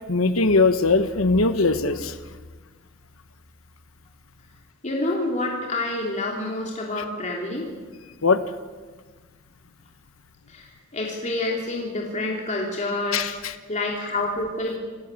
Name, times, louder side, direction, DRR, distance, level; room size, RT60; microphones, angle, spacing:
voice 1, 0.1-2.2 8.2-8.4 13.1-13.5, left 3 dB, 80° left, 10 dB, 1.4 m, -20 dB
voice 2, 4.8-7.6 10.5-13.2 13.7-14.8, left 2 dB, 35° left, -1 dB, 3.3 m, -28 dB
28.5 x 17.0 x 8.4 m, 1.4 s
head